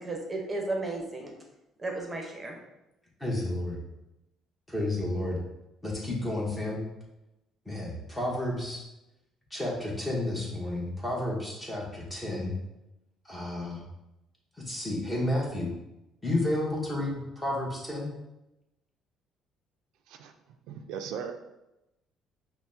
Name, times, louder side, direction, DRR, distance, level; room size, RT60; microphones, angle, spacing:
voice 1, 0.0-1.3 1.8-2.6, right 2 dB, 20° right, 0 dB, 0.8 m, -34 dB
voice 2, 3.2-3.8 4.7-5.4 5.8-6.8 7.7-8.9 9.5-12.5 13.2-13.8 14.6-15.7 16.2-18.1, left 1 dB, 10° left, -3 dB, 1.0 m, -31 dB
voice 3, 20.7-21.3, right 7 dB, 85° right, 5 dB, 0.3 m, -37 dB
5.5 x 2.1 x 2.7 m, 0.92 s
cardioid pair, 125°, 0 cm